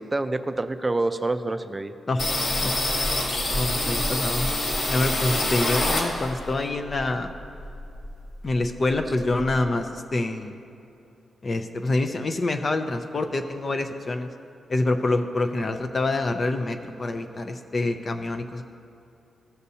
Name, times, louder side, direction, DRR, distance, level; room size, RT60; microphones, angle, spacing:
voice 1, 0.0-1.9 3.1-3.2 3.5-3.6, right 2 dB, 20° right, 9 dB, 0.4 m, -27 dB
sound 1, 2.2-6.5 6.9-8.2 8.5-8.6 8.9-9.6, left 1 dB, 65° left, 1.7 m, -26 dB
voice 2, 3.5-4.5 4.9-7.3 8.4-10.6 11.4-14.3 14.7-18.6, left 2 dB, 35° left, 6 dB, 0.5 m, -26 dB
15.5 x 6.7 x 2.8 m, 2.7 s
wide cardioid pair, 115°, 0 cm